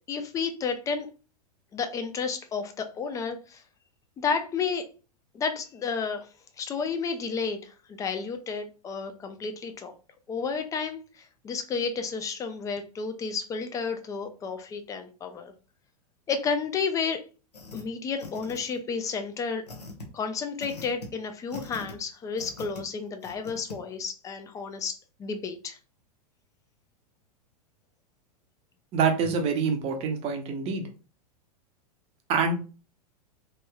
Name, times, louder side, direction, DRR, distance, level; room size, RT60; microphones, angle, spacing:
voice 1, 0.1-1.1 1.7-3.6 4.2-4.8 5.3-6.3 6.6-9.9 10.3-15.5 16.3-17.2 17.7-19.6 20.1-25.8, left 5 dB, 15° left, 6 dB, 0.4 m, -31 dB
sound 1, 17.5-17.8 18.2-18.9 19.7-20.0 20.6-21.1 21.5-21.9 22.4-22.8 23.2-23.8, left 3 dB, 80° left, 0.9 m, -41 dB
voice 2, 28.9-30.8 32.3-32.5, right 5 dB, 30° right, 6 dB, 0.6 m, -26 dB
3.0 x 3.0 x 2.2 m, 0.35 s
figure-of-eight pair, 95°, 20 cm